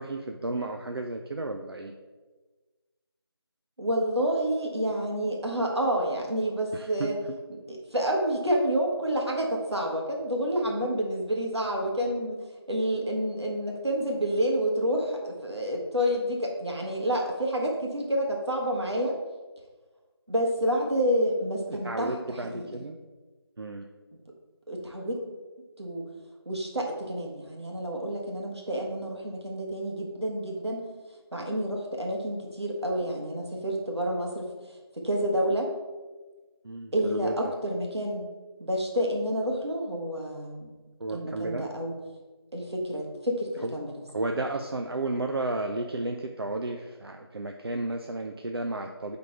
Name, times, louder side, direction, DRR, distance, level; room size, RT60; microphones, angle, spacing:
voice 1, 0.0-1.9 6.7-7.1 21.7-23.0 23.6-23.9 36.6-37.3 41.0-41.7 43.6-43.8 44.1-49.2, right 2 dB, 65° right, 3 dB, 0.5 m, -32 dB
voice 2, 3.8-7.2 7.5-19.1 20.3-22.8 24.7-25.3 25.8-26.0 26.4-30.8 31.3-34.5 35.0-35.7 36.9-38.3 38.6-40.7 41.1-41.9 42.5-43.9, equal, 90° right, 0 dB, 1.7 m, -29 dB
7.4 x 3.8 x 4.4 m, 1.3 s
figure-of-eight pair, 170°, 13 cm